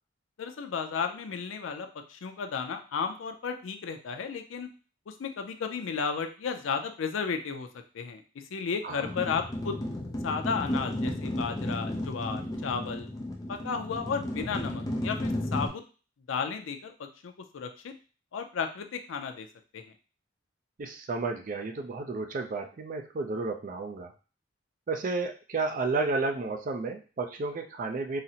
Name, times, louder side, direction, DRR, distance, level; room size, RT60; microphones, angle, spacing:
voice 1, 0.4-4.7 5.1-7.7 7.9-8.2 8.5-9.8 10.2-13.1 13.5-15.8 16.3-17.9 18.3-19.5 19.7-19.8, left 6 dB, 75° left, 6 dB, 0.4 m, -33 dB
sound 1, 9.0-15.7, left 1 dB, 20° left, 0.4 m, -33 dB
voice 2, 20.8-24.1 24.9-28.2, right 3 dB, 40° right, 5 dB, 0.4 m, -32 dB
3.9 x 2.0 x 2.7 m, 0.36 s
head